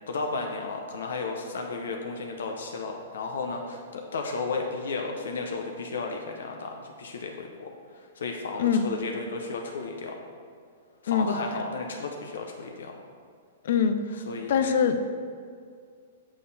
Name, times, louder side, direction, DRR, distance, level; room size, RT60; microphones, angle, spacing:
voice 1, 0.1-10.2 11.0-13.0 14.3-14.6, left 4 dB, 90° left, 2 dB, 0.8 m, -33 dB
voice 2, 13.6-14.2 14.5-15.0, left 7 dB, 60° left, 9 dB, 0.5 m, -23 dB
6.5 x 5.7 x 4.1 m, 2.2 s
hypercardioid pair, 165°, 0 cm